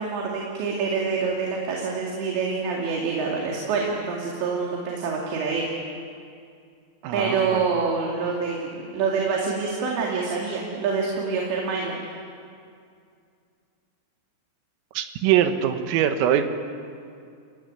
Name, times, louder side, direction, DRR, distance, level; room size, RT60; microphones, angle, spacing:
voice 1, 0.0-5.7 7.1-12.1, right 5 dB, 65° right, -2 dB, 4.5 m, -26 dB
voice 2, 7.0-7.6 15.0-16.5, right 10 dB, 85° right, 7 dB, 3.9 m, -22 dB
29.5 x 17.0 x 9.5 m, 2.3 s
omnidirectional pair, 5.8 m